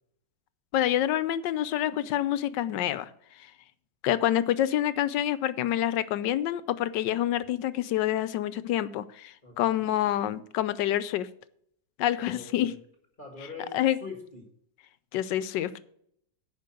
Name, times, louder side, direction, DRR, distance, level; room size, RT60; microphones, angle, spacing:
voice 1, 0.7-3.1 4.0-11.3 12.0-12.7 13.7-14.0 15.1-15.8, left 12 dB, 90° left, 15 dB, 1.3 m, -27 dB
voice 2, 9.4-9.8 12.2-12.8 13.2-14.5, left 4 dB, 30° left, 2 dB, 1.8 m, -43 dB
10.5 x 5.3 x 7.7 m, 0.68 s
omnidirectional pair, 1.9 m